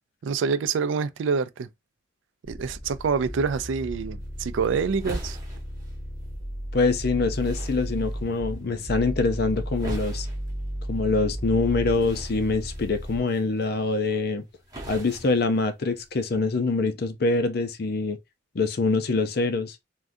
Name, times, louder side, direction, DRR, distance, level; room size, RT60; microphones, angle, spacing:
voice 1, 0.2-1.7 2.5-5.4, right 5 dB, 90° right, 0.4 m, -26 dB
sound 1, 2.4-13.2, equal, 40° left, 1.8 m, -34 dB
sound 2, 4.2-16.2, right 1 dB, 20° right, 1.0 m, -44 dB
voice 2, 6.7-10.3 10.9-14.5 14.9-18.2 18.5-19.8, left 3 dB, 55° left, 0.5 m, -25 dB
3.5 x 2.2 x 2.6 m
head